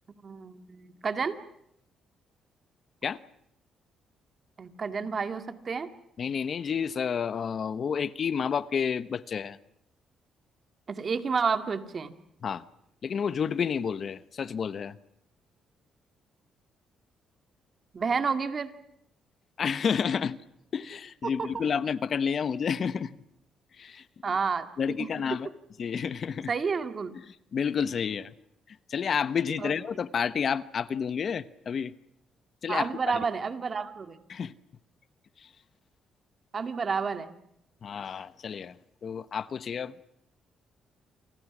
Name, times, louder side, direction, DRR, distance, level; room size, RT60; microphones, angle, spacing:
voice 1, 0.1-1.4 4.6-5.9 10.9-12.1 17.9-18.7 21.2-21.5 24.2-24.7 25.0-25.1 26.5-27.1 29.6-29.7 32.7-34.2 36.5-37.4, right 5 dB, 40° right, 2.1 m, -30 dB
voice 2, 6.2-9.6 12.4-12.6 13.0-15.0 19.6-20.4 20.7-23.2 23.8-24.0 24.8-25.5 25.8-26.5 27.2-28.3 28.7-31.9 32.6-33.2 34.3-34.5 35.4-35.5 37.8-38.8 39.0-39.9, left 7 dB, 50° left, 0.9 m, -30 dB
28.5 x 25.0 x 6.1 m
cardioid pair, 90°, 0 cm